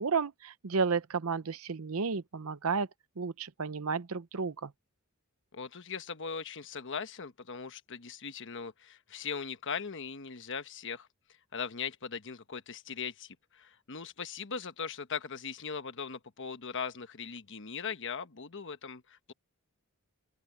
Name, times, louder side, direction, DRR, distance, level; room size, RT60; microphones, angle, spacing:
voice 1, 0.0-2.9 3.2-4.7, right 5 dB, 70° right, 0.7 m, -32 dB
voice 2, 5.5-11.1 11.5-19.3, left 6 dB, 55° left, 1.2 m, -39 dB
open air
head